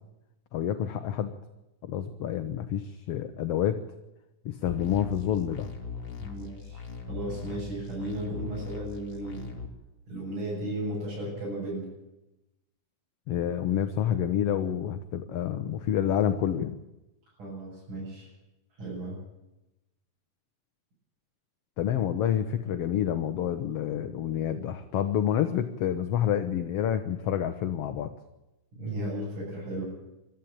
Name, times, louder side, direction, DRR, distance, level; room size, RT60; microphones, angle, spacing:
voice 1, 0.5-1.3 1.8-3.8 4.4-5.7 13.3-16.8 21.8-28.1, left 10 dB, 60° left, 8 dB, 1.8 m, -28 dB
sound 1, 4.7-9.7, left 6 dB, 40° left, 3.0 m, -40 dB
voice 2, 6.2-6.8 7.1-9.5 10.1-11.9 17.4-18.3 18.8-19.2 28.7-29.8, right 1 dB, 75° right, -7 dB, 9.4 m, -35 dB
22.5 x 13.5 x 8.9 m, 0.96 s
omnidirectional pair, 3.5 m